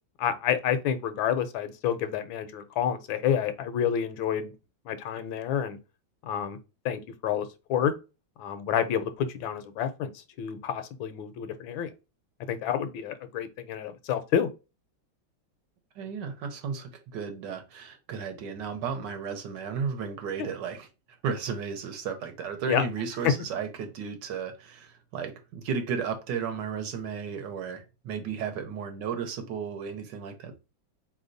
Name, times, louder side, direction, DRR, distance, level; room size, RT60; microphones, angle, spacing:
voice 1, 0.2-4.5 4.9-5.8 6.2-6.6 6.8-7.9 8.4-10.1 10.4-11.9 12.5-14.5 20.4-20.5 22.7-22.8 23.2-23.3, left 9 dB, 85° left, 1.4 m, -29 dB
voice 2, 16.0-20.9 21.2-30.5, right 6 dB, 70° right, 1.3 m, -34 dB
4.2 x 3.4 x 2.6 m
omnidirectional pair, 2.1 m